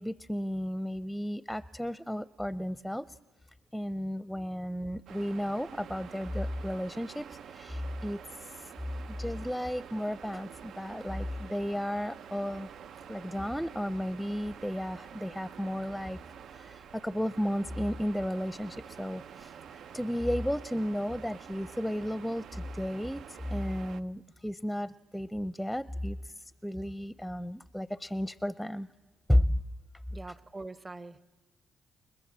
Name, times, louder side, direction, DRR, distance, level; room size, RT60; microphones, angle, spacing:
voice 1, 0.0-3.1 3.7-8.7 9.1-12.7 13.1-16.2 16.5-28.9 29.3-29.6, equal, ahead, 14 dB, 0.7 m, -33 dB
sound 1, 5.1-24.0, right 8 dB, 70° right, 0.7 m, -48 dB
voice 2, 30.1-31.3, right 2 dB, 25° right, 13 dB, 1.1 m, -43 dB
29.5 x 21.0 x 7.5 m, 1.3 s
supercardioid pair, 65°, 0 cm